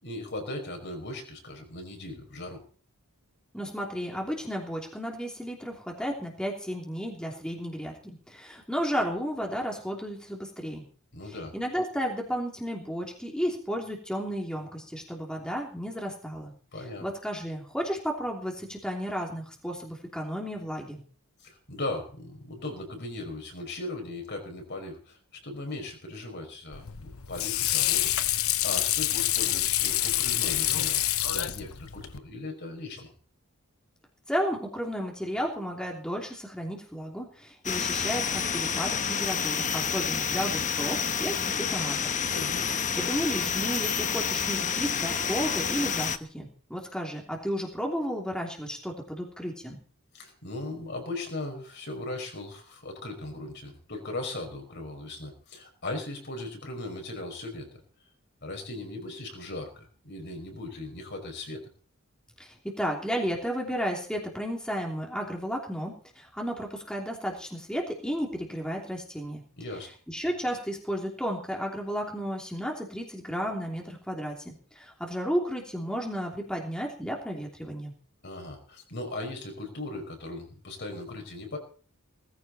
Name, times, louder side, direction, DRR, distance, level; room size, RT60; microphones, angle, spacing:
voice 1, 0.0-2.6 11.1-11.6 16.7-17.1 21.4-31.0 31.3-31.7 31.9-33.1 42.3-42.7 50.1-57.8 58.4-61.6 69.6-69.9 78.2-81.6, left 2 dB, 50° left, 3 dB, 5.4 m, -38 dB
voice 2, 3.5-10.8 11.5-16.5 17.0-21.0 34.3-42.1 42.7-49.8 62.4-69.4 70.1-77.9, equal, 5° left, -1 dB, 3.1 m, -33 dB
Water / Sink (filling or washing), 26.7-32.2, left 13 dB, 75° left, 1.0 m, -27 dB
sound 1, 37.6-46.2, left 7 dB, 35° left, 1.0 m, -29 dB
19.0 x 15.0 x 4.3 m, 0.42 s
head